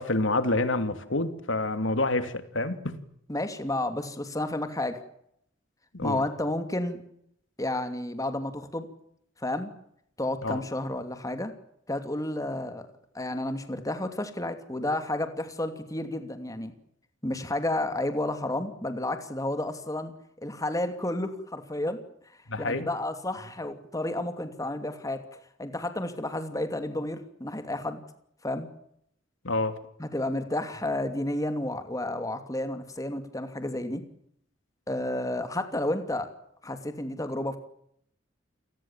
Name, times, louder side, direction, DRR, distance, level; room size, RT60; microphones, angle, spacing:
voice 1, 0.0-2.9 5.9-6.2 10.4-10.6 22.5-22.9 29.4-29.8, left 2 dB, 85° left, 9 dB, 2.8 m, -28 dB
voice 2, 3.3-5.0 6.0-7.0 7.6-8.9 9.4-9.7 10.2-11.5 11.9-12.9 13.1-16.7 17.2-20.1 20.4-22.0 22.6-25.3 25.6-28.0 28.4-28.7 30.0-34.0 34.9-36.3 36.6-37.6, left 1 dB, 20° left, 8 dB, 2.7 m, -31 dB
29.0 x 20.0 x 7.4 m, 0.73 s
head